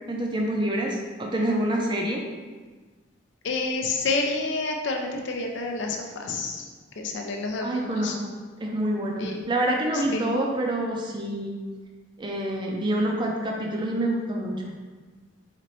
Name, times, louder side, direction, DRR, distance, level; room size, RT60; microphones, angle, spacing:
voice 1, 0.1-2.2 7.6-8.3 8.6-11.6 12.2-14.7, right 1 dB, 25° right, 0 dB, 0.4 m, -27 dB
voice 2, 3.4-6.7 7.0-8.2 9.2-9.4 9.9-10.3, left 3 dB, 65° left, 2 dB, 0.5 m, -29 dB
4.1 x 3.0 x 3.1 m, 1.4 s
head